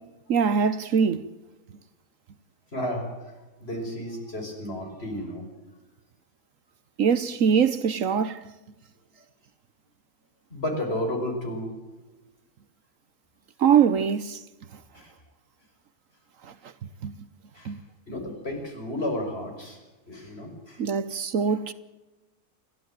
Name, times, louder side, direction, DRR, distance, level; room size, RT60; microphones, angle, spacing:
voice 1, 0.3-1.3 7.0-8.5 13.6-14.4 16.4-16.5 17.0-17.1 17.6-17.8 20.8-21.7, right 7 dB, 65° right, 1.3 m, -23 dB
voice 2, 2.7-3.1 3.6-5.5 10.5-11.7 14.9-15.1 17.5-17.7 18.1-19.8 20.1-20.8, left 1 dB, 45° left, 5.7 m, -32 dB
28.5 x 12.0 x 9.1 m
omnidirectional pair, 1.5 m